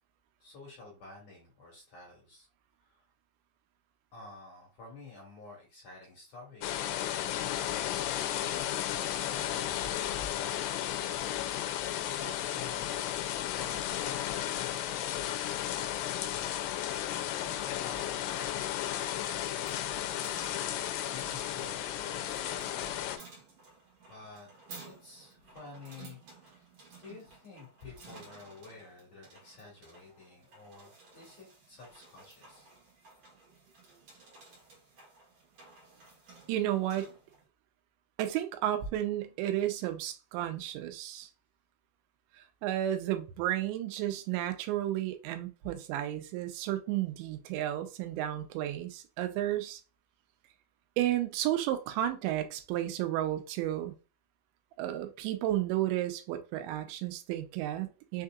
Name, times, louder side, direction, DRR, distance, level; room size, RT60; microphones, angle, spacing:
voice 1, 0.4-2.5 2.8-3.0 4.1-8.1 8.6-11.2 12.2-13.0 13.6-14.7 14.9-16.8 17.1-18.7 19.3-23.2 24.1-24.5 24.8-26.7 27.0-32.7, left 3 dB, 55° left, 2.2 m, -51 dB
sound 1, 6.6-23.2, left 12 dB, 85° left, 2.6 m, -34 dB
sound 2, 17.6-37.4, right 3 dB, 55° right, 1.7 m, -55 dB
voice 2, 36.5-37.1 38.2-41.3 42.6-49.8 51.0-54.0 54.8-58.2, right 13 dB, 90° right, 2.9 m, -32 dB
6.5 x 2.8 x 2.4 m
omnidirectional pair, 5.0 m